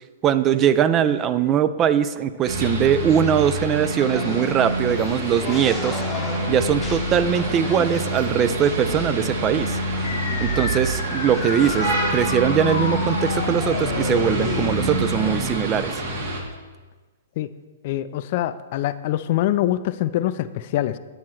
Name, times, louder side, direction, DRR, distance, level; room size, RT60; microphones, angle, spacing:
voice 1, 0.2-6.0 6.5-9.8 10.4-16.0, right 9 dB, 25° right, 12 dB, 0.4 m, -21 dB
sound 1, 2.5-16.4, right 1 dB, 60° right, 1.4 m, -27 dB
sound 2, 4.0-16.4, left 2 dB, 15° left, 0.8 m, -35 dB
sound 3, 10.0-15.0, left 5 dB, 65° left, 1.1 m, -31 dB
voice 2, 17.8-21.0, left 13 dB, 50° left, 13 dB, 0.3 m, -24 dB
9.1 x 8.4 x 3.0 m, 1.4 s
hypercardioid pair, 125°, 0 cm